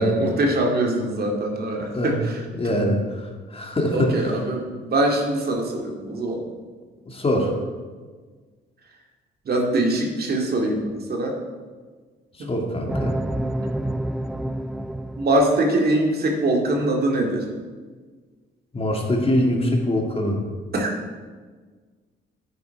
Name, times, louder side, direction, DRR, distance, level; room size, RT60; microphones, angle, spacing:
voice 1, 0.0-2.4 3.9-6.4 9.5-11.4 12.4-12.5 15.2-17.5 20.7-20.9, right 1 dB, 50° right, 1 dB, 2.2 m, -23 dB
voice 2, 2.6-4.4 7.1-7.5 12.4-13.1 18.7-20.4, equal, 30° left, 1 dB, 2.2 m, -23 dB
sound 1, 12.9-15.7, right 1 dB, 5° right, 0.3 m, -28 dB
10.0 x 9.6 x 4.7 m, 1.4 s
cardioid pair, 90°, 20 cm